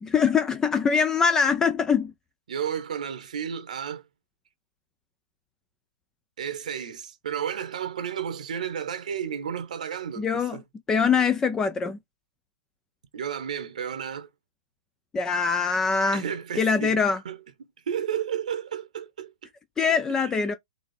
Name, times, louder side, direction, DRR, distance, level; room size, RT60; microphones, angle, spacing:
voice 1, 0.0-2.1 10.2-10.6 10.9-12.0 15.1-16.2 16.6-17.2 19.8-20.5, left 5 dB, 10° left, 0.4 m, -23 dB
voice 2, 2.5-4.0 6.4-10.6 13.1-14.3 16.1-17.4 17.9-19.3 20.2-20.3, right 8 dB, 60° right, 0.9 m, -32 dB
4.1 x 2.9 x 3.3 m
hypercardioid pair, 125°, 5 cm